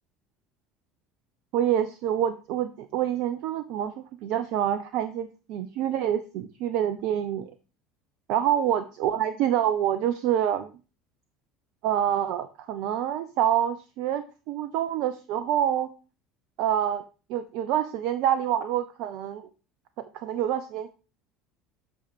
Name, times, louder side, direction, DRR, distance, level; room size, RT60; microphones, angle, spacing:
voice 1, 1.5-7.5 8.3-10.7 11.8-15.9 16.6-17.0 17.3-19.5 20.1-20.9, right 10 dB, 55° right, 11 dB, 0.6 m, -27 dB
8.5 x 6.1 x 3.6 m, 0.35 s
figure-of-eight pair, 65°, 0 cm